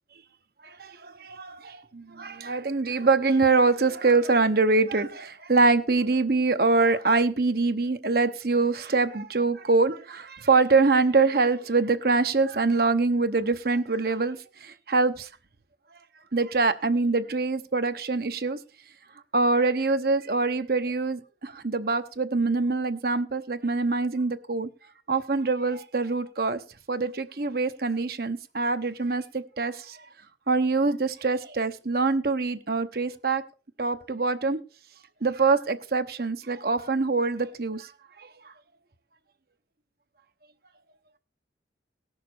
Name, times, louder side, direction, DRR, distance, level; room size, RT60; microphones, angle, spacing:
voice 1, 0.6-15.3 16.3-18.6 19.3-24.7 25.1-26.6 26.9-30.0 30.5-33.4 33.8-34.6 35.2-37.9 38.2-38.5, right 3 dB, 55° right, 0.9 m, -24 dB
18.0 x 6.6 x 4.4 m
head